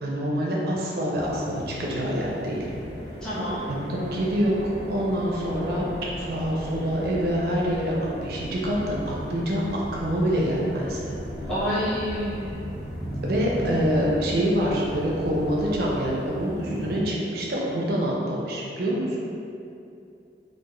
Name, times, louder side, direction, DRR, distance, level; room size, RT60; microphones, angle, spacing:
voice 1, 0.0-2.7 3.7-5.9 6.2-11.1 13.2-19.2, equal, 60° right, -4 dB, 0.4 m, -26 dB
sound 1, 1.1-17.0, equal, 90° left, 1.0 m, -38 dB
sound 2, 2.6-16.2, equal, 30° left, 0.7 m, -40 dB
voice 2, 3.2-3.6 11.5-12.6, equal, 5° left, -12 dB, 0.4 m, -28 dB
2.2 x 2.1 x 2.9 m, 2.6 s
head